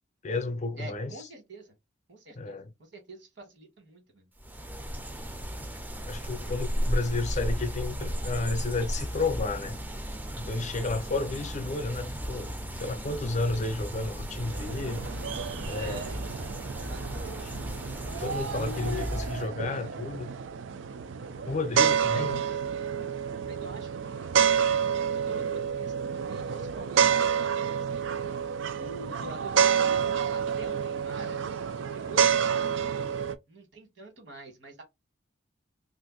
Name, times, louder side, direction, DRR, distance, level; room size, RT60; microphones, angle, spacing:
voice 1, 0.2-1.1 2.4-2.7 5.6-5.7 6.1-9.8 10.4-15.0 15.7-16.0 18.1-20.3 21.4-22.4, left 3 dB, 40° left, 0.5 m, -32 dB
voice 2, 0.8-1.7 2.1-4.3 15.7-16.2 16.8-17.2 18.5-19.2 21.7-22.3 23.4-24.4 24.8-28.1 28.8-31.6 31.9-33.1 33.5-34.8, right 2 dB, 70° right, 1.4 m, -45 dB
sound 1, 4.4-19.5, equal, 10° right, 0.4 m, -35 dB
sound 2, 14.4-33.3, right 7 dB, 90° right, 0.4 m, -29 dB
2.5 x 2.5 x 3.8 m
head